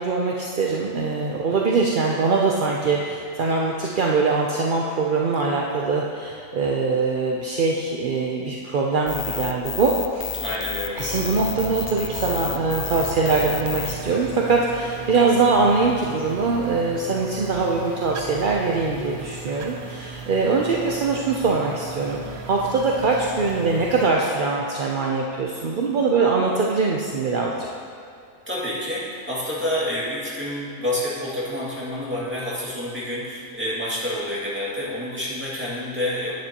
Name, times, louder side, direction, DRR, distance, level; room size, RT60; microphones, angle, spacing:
voice 1, 0.0-10.3 10.9-22.2 22.5-27.7, right 4 dB, 55° right, -1 dB, 0.6 m, -22 dB
sound 1, 9.1-13.9, left 9 dB, 70° left, 0.8 m, -31 dB
voice 2, 10.4-11.2 28.5-36.3, left 1 dB, 10° right, -8 dB, 2.1 m, -28 dB
sound 2, 11.0-24.1, right 5 dB, 80° right, 1.2 m, -37 dB
10.5 x 9.6 x 2.9 m, 2.5 s
omnidirectional pair, 1.6 m